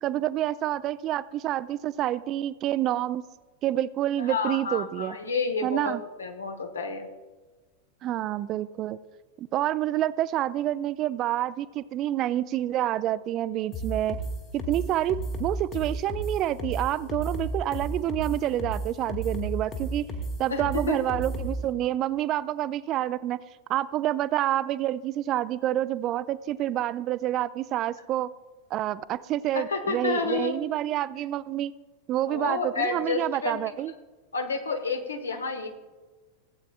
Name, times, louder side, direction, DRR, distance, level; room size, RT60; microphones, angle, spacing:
voice 1, 0.0-3.2 3.6-5.2 5.6-6.0 8.0-9.0 9.4-14.2 14.5-20.1 20.4-23.4 23.7-28.3 28.7-31.7 32.1-33.9, right 13 dB, 35° right, 17 dB, 0.3 m, -28 dB
voice 2, 4.2-5.9 6.2-7.1 20.5-21.0 29.5-30.6 32.3-33.6 34.3-35.7, left 4 dB, 70° left, 5 dB, 1.2 m, -30 dB
sound 1, 13.7-21.6, right 1 dB, 30° left, 1.5 m, -32 dB
16.5 x 8.4 x 2.4 m, 1.3 s
figure-of-eight pair, 90°, 0 cm